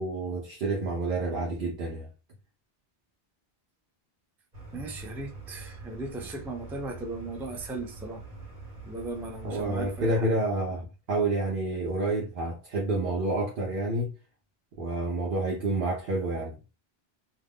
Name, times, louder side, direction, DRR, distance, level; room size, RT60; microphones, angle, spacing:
voice 1, 0.0-2.1 9.4-14.1 14.8-16.7, right 2 dB, 60° right, 0.7 m, -29 dB
sound 1, 4.5-10.1, right 3 dB, 40° right, 1.1 m, -44 dB
voice 2, 4.7-8.2 8.9-10.4, right 2 dB, 5° right, 0.3 m, -37 dB
2.5 x 2.1 x 3.4 m
omnidirectional pair, 1.1 m